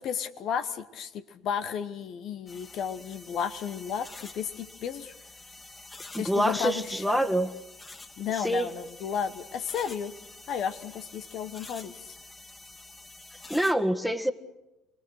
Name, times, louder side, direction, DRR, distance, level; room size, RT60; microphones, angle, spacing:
voice 1, 0.0-5.1 6.2-7.3 8.2-10.1 10.5-12.1, left 8 dB, 55° left, 11 dB, 1.1 m, -33 dB
sound 1, 2.5-13.7, left 3 dB, 25° left, 2.8 m, -48 dB
voice 2, 6.1-7.5 8.4-8.7 13.5-14.3, right 1 dB, ahead, 7 dB, 1.7 m, -26 dB
29.0 x 20.5 x 6.4 m, 1.0 s
hypercardioid pair, 60°, 0 cm